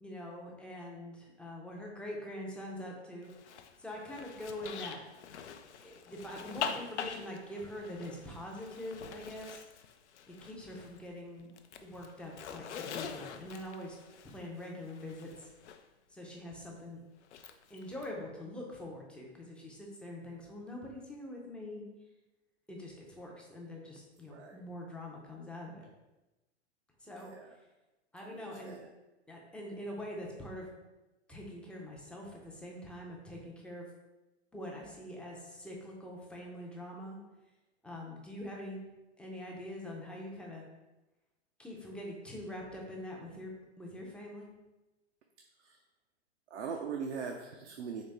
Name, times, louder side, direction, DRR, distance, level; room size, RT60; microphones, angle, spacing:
voice 1, 0.0-3.3 3.8-5.0 5.8-9.5 10.3-11.5 11.8-14.0 14.2-15.3 16.1-17.0 17.7-21.8 22.7-25.9 27.0-27.3 28.1-28.8 29.3-30.7 31.3-33.9 34.5-37.2 37.8-38.8 39.2-40.6 41.6-43.5 43.8-44.5, left 1 dB, 5° left, -2 dB, 0.4 m, -44 dB
Zipper (clothing), 3.2-11.1 11.4-15.8 17.2-18.1, left 7 dB, 85° left, 0.5 m, -44 dB
voice 2, 24.3-24.6 27.2-27.6 28.2-28.9 45.6-45.8 46.5-48.0, right 6 dB, 90° right, 2 dB, 0.5 m, -41 dB
4.1 x 3.0 x 3.3 m, 1.0 s
hypercardioid pair, 120°, 34 cm